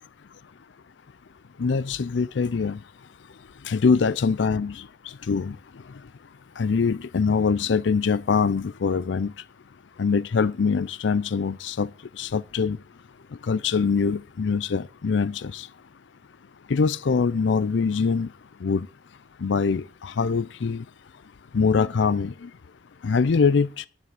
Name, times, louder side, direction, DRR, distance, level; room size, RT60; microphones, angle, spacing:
voice 1, 1.6-2.8 3.7-4.7 5.3-5.5 6.6-9.3 10.0-11.9 12.2-12.8 13.5-15.7 16.7-18.3 18.6-18.9 19.4-20.8 21.5-22.3 23.0-23.8, left 5 dB, 75° left, 0.5 m, -23 dB
11.0 x 7.5 x 8.2 m
head